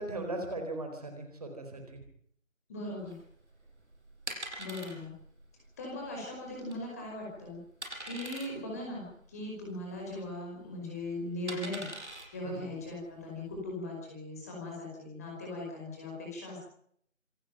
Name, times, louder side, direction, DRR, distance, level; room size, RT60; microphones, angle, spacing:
voice 1, 0.0-2.0 12.4-12.7, right 2 dB, 30° right, 4 dB, 4.4 m, -38 dB
voice 2, 2.7-3.2 4.6-5.1 5.8-7.6 8.0-11.9 12.3-16.7, left 1 dB, 10° left, -2 dB, 5.1 m, -39 dB
sound 1, 3.0-13.6, right 1 dB, 60° right, 6.3 m, -45 dB
27.0 x 14.0 x 9.3 m, 0.66 s
figure-of-eight pair, 165°, 39 cm